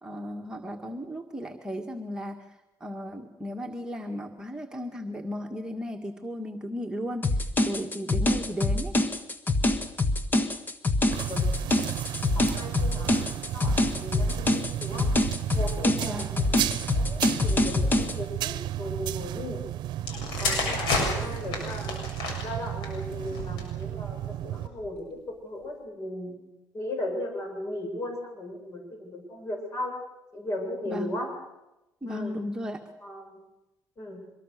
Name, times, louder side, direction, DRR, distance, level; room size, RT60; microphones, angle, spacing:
voice 1, 0.0-9.0 16.0-16.3 30.9-31.1 32.0-32.8, equal, 10° right, 1 dB, 2.0 m, -35 dB
sound 1, 7.2-18.1, left 2 dB, 25° left, 1.6 m, -25 dB
sound 2, 11.1-24.7, right 13 dB, 75° right, 0.8 m, -34 dB
voice 2, 12.3-15.1 15.5-16.2 16.9-19.6 20.4-22.0 22.4-24.2 24.4-26.4 26.7-30.0 30.3-31.3 32.1-32.4 33.0-33.4 34.0-34.2, left 1 dB, 40° left, 3 dB, 7.9 m, -36 dB
sound 3, 20.0-23.8 24.6-24.9, left 3 dB, 85° left, 7.0 m, -31 dB
24.5 x 22.0 x 6.8 m, 0.96 s
cardioid pair, 105°, 8 cm